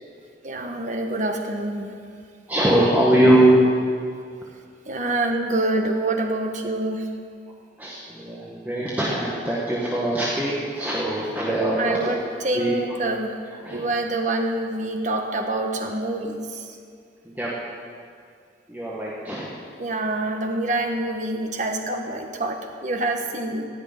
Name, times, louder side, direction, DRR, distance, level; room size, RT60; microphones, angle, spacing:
voice 1, 0.4-1.9 4.9-7.1 11.8-13.3 13.7-16.6 19.8-23.7, right 2 dB, 40° right, 3 dB, 1.3 m, -26 dB
voice 2, 2.5-3.8 7.8-12.1 12.5-12.7 13.6-13.8 17.3-17.5 18.7-19.5, right 1 dB, 10° right, -6 dB, 1.6 m, -21 dB
16.0 x 6.6 x 9.6 m, 2.2 s
head